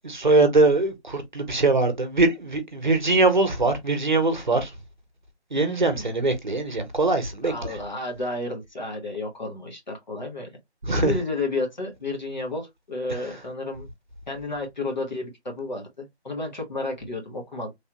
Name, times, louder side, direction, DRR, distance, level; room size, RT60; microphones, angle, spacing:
voice 1, 0.0-4.7 5.5-7.5 10.8-11.1, right 3 dB, 45° right, 0.8 m, -22 dB
voice 2, 5.5-6.1 7.4-10.5 10.9-13.9 14.3-17.7, left 2 dB, 40° left, 1.1 m, -32 dB
3.2 x 2.7 x 2.8 m
figure-of-eight pair, 175°, 33 cm